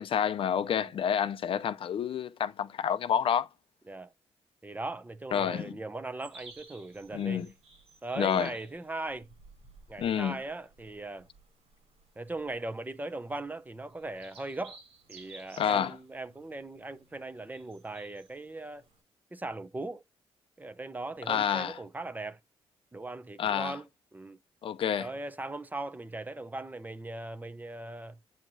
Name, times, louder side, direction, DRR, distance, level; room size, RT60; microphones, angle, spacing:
voice 1, 0.0-3.5 5.3-5.7 7.1-7.5 8.2-8.5 10.0-10.4 15.6-15.9 21.3-21.8 23.4-23.7 24.6-25.1, left 8 dB, 60° left, 0.5 m, -29 dB
voice 2, 4.6-7.5 8.0-9.3 9.9-11.3 12.2-14.8 15.1-18.9 19.3-20.0 20.6-22.4 22.9-23.9 24.1-24.4 25.0-28.2, right 2 dB, 15° right, 0.6 m, -39 dB
sound 1, 6.2-19.0, right 3 dB, 80° right, 4.5 m, -56 dB
8.9 x 4.5 x 2.6 m
cardioid pair, 90°, 10 cm